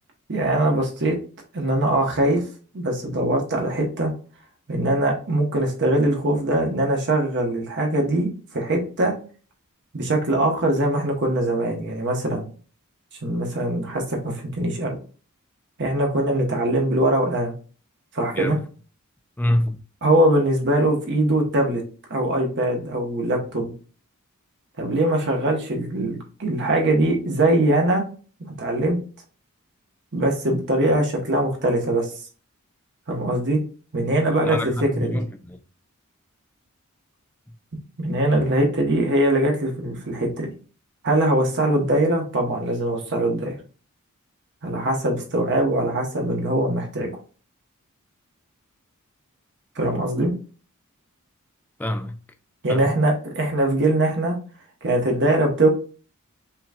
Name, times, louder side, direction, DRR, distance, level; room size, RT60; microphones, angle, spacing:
voice 1, 0.3-1.1 1.5-2.4 2.7-4.1 4.7-9.1 9.9-12.4 13.2-15.0 15.8-17.5 18.1-18.6 20.0-21.8 22.1-23.7 24.8-28.0 28.4-29.0 30.1-32.1 33.1-33.6 33.9-35.2 38.0-40.5 41.0-43.6 44.6-47.1 49.7-50.3 52.6-54.3 54.8-55.7, right 1 dB, 55° right, 1.1 m, -22 dB
voice 2, 19.4-19.8 34.4-35.6 37.5-37.6 51.8-52.2 52.7-52.9, left 1 dB, 10° left, 0.4 m, -26 dB
5.6 x 3.1 x 2.4 m
head